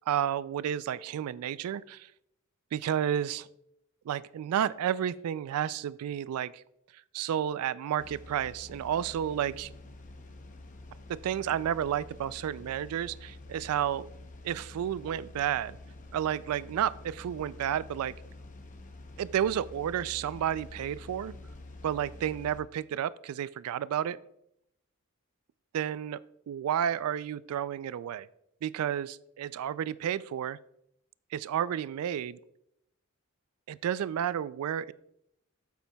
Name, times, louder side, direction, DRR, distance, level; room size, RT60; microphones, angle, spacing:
voice 1, 0.1-2.1 2.7-3.5 4.1-6.6 7.1-9.7 11.1-14.1 14.4-15.8 16.1-18.1 19.2-21.3 21.8-24.2 25.7-26.2 26.5-28.3 28.6-30.6 31.3-32.4 33.7-34.9, right 9 dB, 80° right, 18 dB, 0.3 m, -31 dB
sound 1, 8.0-22.6, left 2 dB, 35° left, 0.7 m, -48 dB
8.3 x 8.2 x 2.2 m, 0.78 s
head